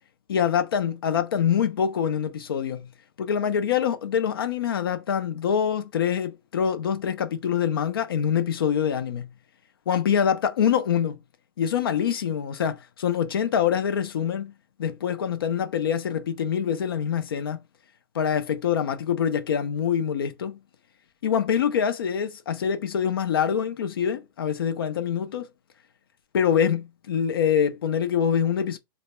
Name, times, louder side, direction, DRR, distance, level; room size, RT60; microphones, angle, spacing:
voice 1, 0.3-2.9 3.2-9.3 9.9-11.2 11.6-14.5 14.8-17.6 18.1-20.6 21.2-25.5 26.3-28.8, left 8 dB, 90° left, 0.5 m, -25 dB
2.1 x 2.1 x 2.9 m
hypercardioid pair, 170°, 12 cm